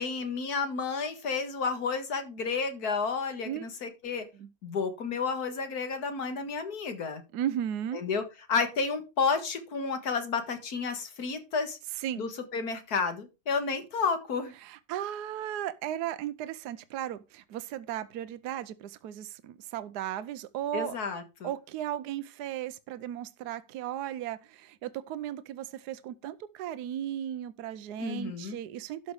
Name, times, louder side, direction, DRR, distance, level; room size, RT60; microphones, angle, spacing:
voice 1, 0.0-4.3 4.6-7.2 7.9-8.2 8.5-11.8 12.2-14.5 20.7-21.5 28.0-28.6, left 5 dB, 65° left, 2.2 m, -31 dB
voice 2, 7.3-8.0 12.0-12.2 14.6-21.0 21.4-29.1, right 11 dB, 75° right, 1.2 m, -36 dB
12.0 x 5.6 x 4.8 m
omnidirectional pair, 1.7 m